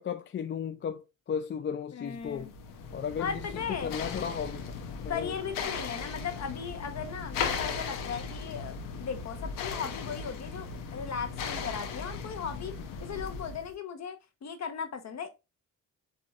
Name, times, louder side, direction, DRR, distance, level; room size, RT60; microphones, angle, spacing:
voice 1, 0.0-2.5 2.9-4.6 5.0-5.3, left 7 dB, 35° left, 0.4 m, -35 dB
voice 2, 1.9-2.5 3.2-3.9 5.1-12.7 13.0-15.3, left 6 dB, 55° left, 1.0 m, -37 dB
sound 1, 2.2-13.7, left 5 dB, 85° left, 0.9 m, -37 dB
7.9 x 2.7 x 2.4 m
cardioid pair, 80°, 32 cm